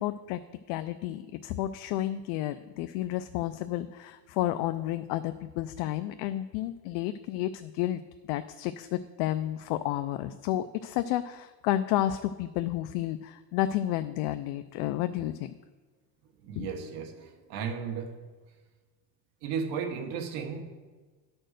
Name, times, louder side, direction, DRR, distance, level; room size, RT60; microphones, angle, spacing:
voice 1, 0.0-8.0 8.3-15.5 16.6-16.9, left 13 dB, 75° left, 11 dB, 0.5 m, -31 dB
voice 2, 16.4-18.1 19.4-20.6, right 6 dB, 80° right, 3 dB, 1.4 m, -34 dB
10.0 x 4.4 x 6.4 m, 1.4 s
cardioid pair, 150°, 41 cm